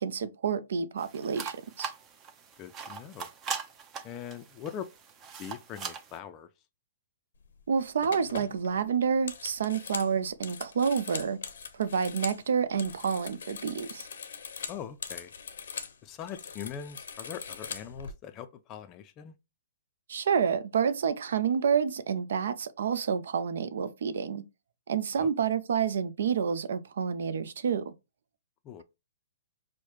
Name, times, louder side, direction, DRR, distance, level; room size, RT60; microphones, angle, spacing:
voice 1, 0.0-1.9 7.7-11.4 11.7-14.1 20.1-24.4 24.9-27.9, right 7 dB, 70° right, 0.4 m, -29 dB
sound 1, 1.0-6.2, right 6 dB, 20° right, 0.6 m, -41 dB
voice 2, 2.6-3.3 4.0-4.9 5.4-6.5 14.7-15.3 16.0-19.3 25.2-25.3 28.6-28.8, left 9 dB, 25° left, 0.4 m, -41 dB
sound 2, 7.4-7.6 8.0-12.4 12.7-16.0 16.2-18.1, left 6 dB, 75° left, 0.6 m, -41 dB
4.6 x 2.1 x 2.9 m
hypercardioid pair, 145°, 0 cm